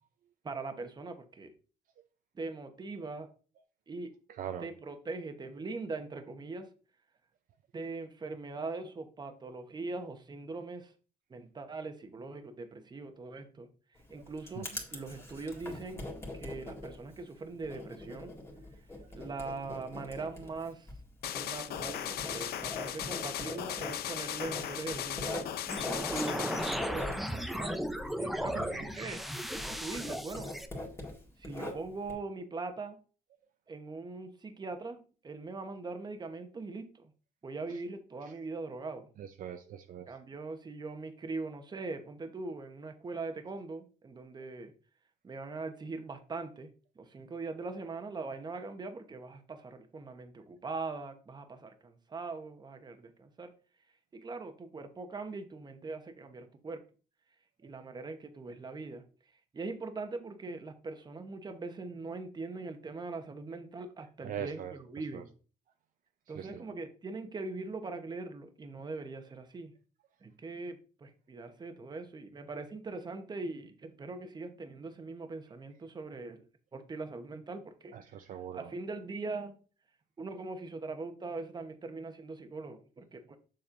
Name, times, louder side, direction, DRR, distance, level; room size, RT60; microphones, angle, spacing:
voice 1, 0.4-1.5 2.3-3.3 3.9-4.1 4.6-6.7 7.7-10.9 11.3-13.7 14.1-16.0 16.3-18.3 19.1-20.9 21.4-25.4 26.0-27.8 28.1-29.2 29.8-30.6 31.4-33.0 33.7-37.1 37.4-39.1 40.1-44.7 45.2-46.7 47.0-53.5 54.1-56.8 57.6-59.0 59.5-65.3 66.3-69.7 70.2-76.4 76.7-78.0 78.5-79.6 80.2-83.4, right 3 dB, 25° right, 7 dB, 1.0 m, -41 dB
Writing, 13.9-29.3 29.6-32.1, left 1 dB, 15° left, 1.9 m, -43 dB
sound 1, 21.2-26.8, left 10 dB, 65° left, 0.6 m, -37 dB
sound 2, 25.7-30.7, equal, ahead, 0.6 m, -36 dB
voice 2, 28.5-28.8 37.7-37.8 39.2-40.1 64.2-64.7 65.1-65.2 66.3-66.6 77.9-78.7, right 9 dB, 55° right, 7 dB, 0.6 m, -41 dB
7.2 x 6.3 x 2.6 m, 0.37 s
cardioid pair, 110°, 17 cm